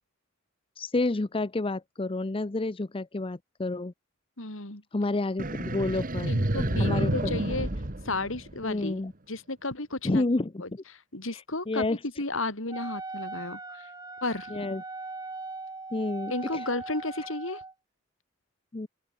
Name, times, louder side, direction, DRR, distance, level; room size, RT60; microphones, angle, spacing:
voice 1, 0.8-3.9 4.9-6.3 6.8-7.3 8.6-9.1 10.0-10.8 11.3-11.4 11.7-12.0 14.5-14.8 15.9-16.6 18.7-18.9, left 2 dB, 25° left, 0.6 m, -29 dB
voice 2, 4.4-4.8 6.3-7.7 8.0-9.0 9.3-10.2 10.6-13.9 14.2-14.8 16.3-17.6, left 2 dB, 65° left, 4.0 m, -33 dB
sound 1, 5.4-8.9, right 1 dB, 40° right, 1.8 m, -29 dB
Wind instrument woodwind instrument, 12.7-17.7, right 3 dB, 20° right, 4.8 m, -40 dB
open air
head